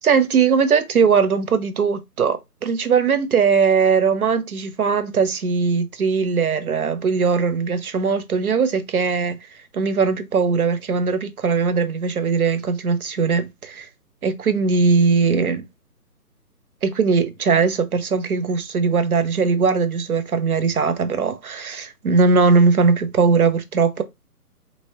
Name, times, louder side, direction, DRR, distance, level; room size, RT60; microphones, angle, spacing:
voice 1, 0.0-9.4 9.7-13.9 14.2-15.6 16.8-24.0, right 5 dB, 65° right, 1.1 m, -19 dB
4.5 x 3.5 x 2.8 m
hypercardioid pair, 165°, 47 cm